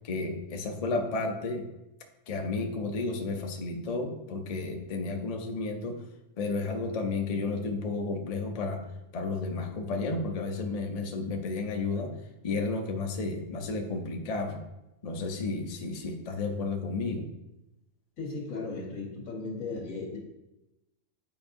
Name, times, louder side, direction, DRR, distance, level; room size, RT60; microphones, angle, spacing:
voice 1, 0.0-1.7 2.3-6.0 6.4-8.8 9.1-12.2 12.4-14.6 15.0-17.3, left 3 dB, 40° left, 3 dB, 0.5 m, -32 dB
voice 2, 18.2-20.2, left 3 dB, 80° left, -1 dB, 1.8 m, -36 dB
9.0 x 4.6 x 2.6 m, 0.95 s
omnidirectional pair, 1.4 m